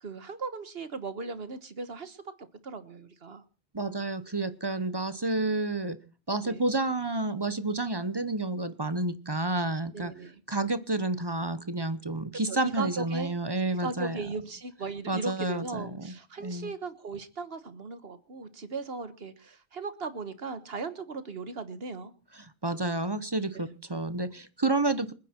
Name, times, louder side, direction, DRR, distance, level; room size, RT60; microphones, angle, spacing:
voice 1, 0.0-3.4 4.8-4.9 6.4-6.6 9.9-10.4 12.5-13.4 13.8-22.1 23.5-23.7, right 4 dB, 70° right, 11 dB, 1.6 m, -37 dB
voice 2, 3.7-6.0 6.3-10.1 10.5-14.2 15.1-16.1 16.4-16.7 22.3-25.1, right 2 dB, 25° right, 13 dB, 0.8 m, -30 dB
28.5 x 9.6 x 4.4 m, 0.37 s
omnidirectional pair, 1.0 m